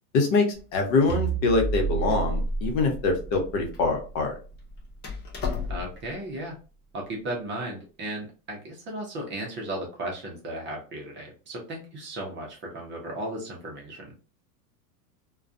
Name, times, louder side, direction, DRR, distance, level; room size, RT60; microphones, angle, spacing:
voice 1, 0.1-4.3, left 3 dB, 55° left, 2 dB, 1.0 m, -24 dB
Door, 0.5-6.1, left 5 dB, 20° left, 0.3 m, -38 dB
sound 1, 1.1-5.6, right 4 dB, 5° right, 1.0 m, -31 dB
voice 2, 5.7-6.6 6.9-14.1, right 1 dB, 25° right, -1 dB, 0.6 m, -35 dB
2.3 x 2.3 x 2.6 m, 0.35 s
supercardioid pair, 125°, 49 cm